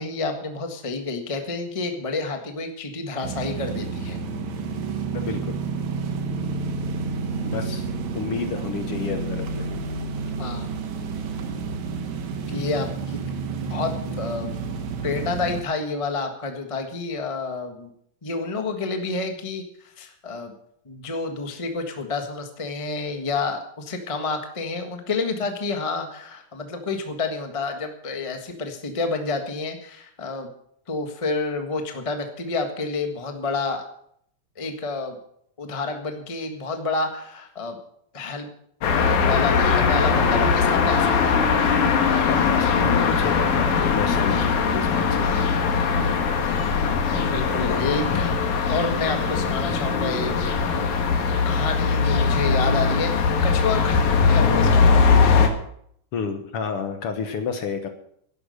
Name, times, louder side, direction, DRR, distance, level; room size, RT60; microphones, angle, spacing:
voice 1, 0.0-4.2 10.4-10.7 12.3-13.2 13.6-14.5 15.0-17.9 18.2-20.5 20.8-30.5 30.9-33.8 34.6-35.2 35.6-37.8 38.1-38.5 38.9-41.4 46.8-48.3 48.7-50.9 51.4-55.1, left 3 dB, 20° left, 5 dB, 0.9 m, -29 dB
sound 1, 3.2-15.6, right 4 dB, 75° right, 2.7 m, -30 dB
voice 2, 5.1-5.6 7.4-7.9 8.1-9.8 42.2-45.3 48.1-48.2 56.1-57.9, left 6 dB, 60° left, 7 dB, 1.8 m, -30 dB
sound 2, 38.8-55.5, left 5 dB, 85° left, 3.0 m, -20 dB
12.5 x 11.0 x 6.5 m, 0.68 s
omnidirectional pair, 3.4 m